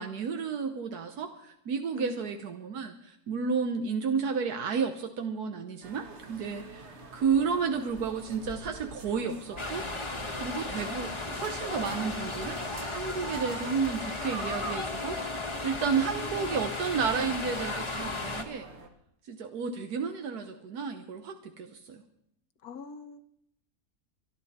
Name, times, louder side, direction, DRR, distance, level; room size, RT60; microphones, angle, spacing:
voice 1, 0.0-12.6 12.9-18.7 19.3-22.0, right 6 dB, 85° right, 6 dB, 1.5 m, -32 dB
voice 2, 1.9-2.3 7.4-8.0 15.9-16.6 22.6-23.3, left 5 dB, 80° left, 9 dB, 1.6 m, -43 dB
sound 1, 5.8-18.9, right 2 dB, 50° right, 1.7 m, -47 dB
sound 2, 9.6-18.4, left 2 dB, 20° left, 1.2 m, -35 dB
24.5 x 11.5 x 4.3 m, 0.75 s
omnidirectional pair, 1.6 m